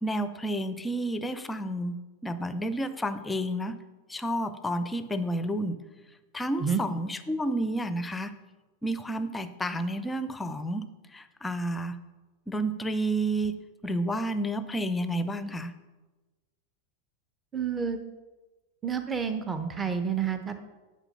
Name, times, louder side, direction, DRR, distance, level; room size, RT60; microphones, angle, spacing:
voice 1, 0.0-1.9 2.2-3.8 4.1-5.8 6.3-8.3 8.8-12.0 12.5-15.7, right 1 dB, 10° left, 11 dB, 0.6 m, -30 dB
voice 2, 17.5-18.0 18.8-20.6, right 6 dB, 15° right, 8 dB, 0.8 m, -29 dB
9.9 x 5.6 x 5.5 m, 1.2 s
figure-of-eight pair, 90°, 0 cm